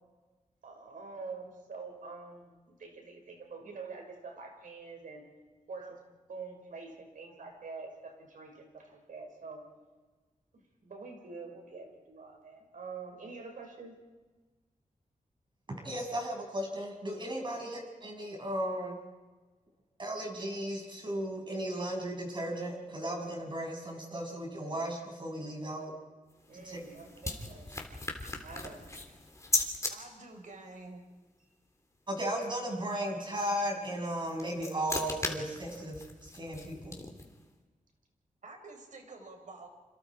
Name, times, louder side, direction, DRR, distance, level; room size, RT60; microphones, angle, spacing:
voice 1, 0.6-5.3 5.7-6.0 6.3-9.7 10.5-14.0 17.5-17.6 26.5-27.7 28.4-28.9, right 4 dB, 85° right, 2 dB, 5.8 m, -46 dB
voice 2, 15.8-18.9 20.0-25.9 26.5-26.8 32.1-37.0, right 1 dB, 35° right, 1 dB, 6.6 m, -36 dB
sound 1, 26.3-29.9 34.1-37.4, left 2 dB, 20° left, 3.5 m, -37 dB
voice 3, 29.9-31.1 38.4-39.7, right 3 dB, 70° right, 4 dB, 4.9 m, -48 dB
28.5 x 27.5 x 4.9 m, 1.3 s
wide cardioid pair, 95°, 14 cm